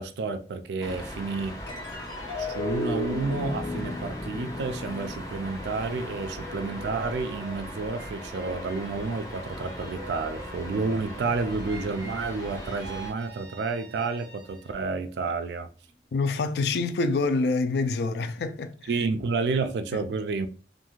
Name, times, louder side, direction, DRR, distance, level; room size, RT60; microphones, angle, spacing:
voice 1, 0.0-1.6 2.4-15.7 18.9-20.5, right 4 dB, 75° right, 0.3 m, -30 dB
sound 1, 0.8-13.1, equal, 20° left, 0.6 m, -39 dB
sound 2, 1.7-8.3, left 2 dB, 90° left, 1.5 m, -36 dB
sound 3, 5.1-14.9 15.4-16.0, right 3 dB, 20° right, 0.7 m, -46 dB
voice 2, 16.1-18.9 19.9-20.0, left 3 dB, 70° left, 0.3 m, -26 dB
2.5 x 2.3 x 3.0 m
head